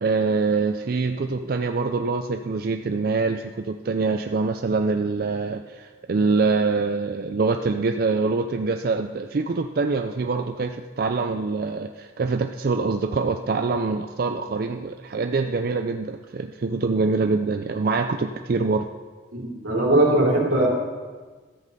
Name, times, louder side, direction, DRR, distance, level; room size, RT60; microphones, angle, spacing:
voice 1, 0.0-18.9, right 4 dB, 45° right, 6 dB, 0.4 m, -24 dB
voice 2, 19.3-20.7, right 1 dB, 85° right, -3 dB, 3.1 m, -20 dB
13.0 x 7.5 x 5.4 m, 1.4 s
head